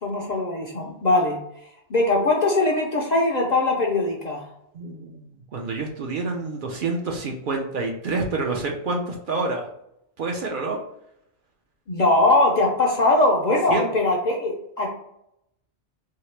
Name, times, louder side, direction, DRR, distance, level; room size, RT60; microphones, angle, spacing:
voice 1, 0.0-1.4 1.9-4.5 11.9-14.9, left 2 dB, 55° left, -1 dB, 0.5 m, -21 dB
voice 2, 4.7-9.7 10.2-10.8 13.7-13.8, right 3 dB, 55° right, 1 dB, 0.6 m, -28 dB
2.8 x 2.8 x 3.1 m, 0.77 s
omnidirectional pair, 1.2 m